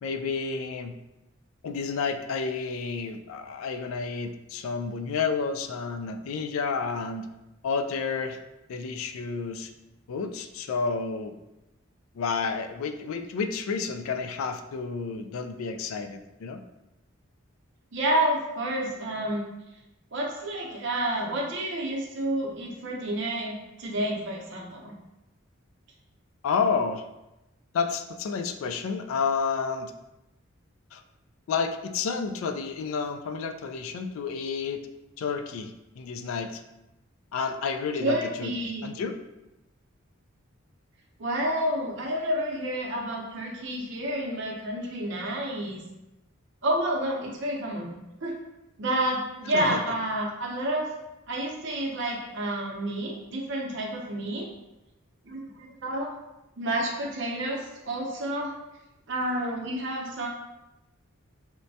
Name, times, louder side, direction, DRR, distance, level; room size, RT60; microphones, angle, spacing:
voice 1, 0.0-0.9 1.6-7.3 7.6-8.4 8.7-9.7 10.1-11.3 12.2-16.6 26.4-27.0 27.7-29.9 30.9-31.0 31.5-34.8 35.2-36.6 37.3-39.2 49.5-49.8, left 5 dB, 75° left, 6 dB, 0.3 m, -30 dB
voice 2, 17.9-19.5 20.1-24.9 38.0-38.8 41.2-45.8 46.6-47.9 48.2-48.4 48.8-50.9 51.3-54.5 55.3-56.1 56.6-57.6 57.9-58.5 59.1-60.3, right 1 dB, 60° right, -1 dB, 0.6 m, -29 dB
4.4 x 2.1 x 2.7 m, 0.96 s
head